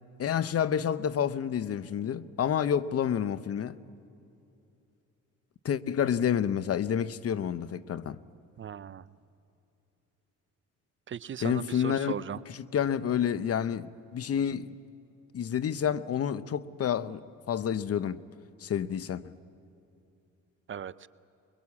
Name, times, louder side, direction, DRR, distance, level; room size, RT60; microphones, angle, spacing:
voice 1, 0.2-3.8 5.6-8.2 11.4-12.1 12.5-13.9 14.1-14.7 15.3-18.2 18.6-19.3, left 8 dB, 50° left, 0.9 m, -29 dB
voice 2, 8.6-9.1 11.1-12.4 20.7-21.1, right 8 dB, 40° right, 0.6 m, -37 dB
23.5 x 22.0 x 8.5 m
cardioid pair, 90°, 30 cm